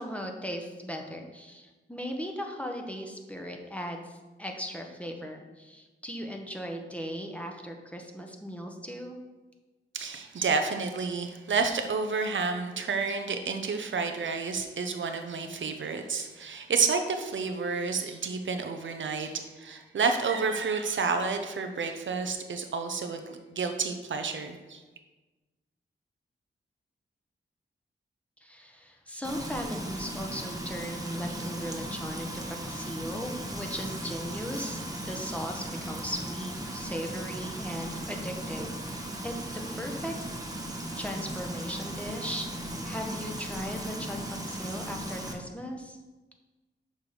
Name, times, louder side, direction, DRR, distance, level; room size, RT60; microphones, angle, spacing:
voice 1, 0.0-9.2 28.4-40.1 41.0-46.0, equal, 5° left, 2 dB, 1.2 m, -38 dB
voice 2, 9.9-24.8, right 4 dB, 70° right, 6 dB, 0.8 m, -30 dB
Frying (food), 29.2-45.3, right 1 dB, 20° right, 1.3 m, -37 dB
6.4 x 5.7 x 5.0 m, 1.2 s
cardioid pair, 55°, 20 cm